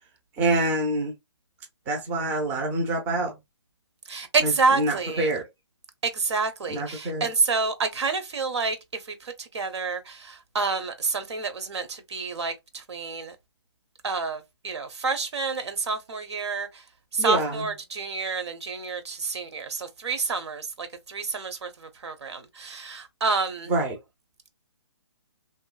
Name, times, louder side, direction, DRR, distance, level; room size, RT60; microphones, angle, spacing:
voice 1, 0.4-1.1 1.9-3.3 4.4-5.4 6.7-7.3 17.2-17.7 23.7-24.0, right 2 dB, 10° right, 0.5 m, -26 dB
voice 2, 4.1-5.3 6.0-13.4 14.0-16.8 17.1-23.7, right 4 dB, 70° right, 0.9 m, -28 dB
2.9 x 2.2 x 2.3 m
hypercardioid pair, 155°, 15 cm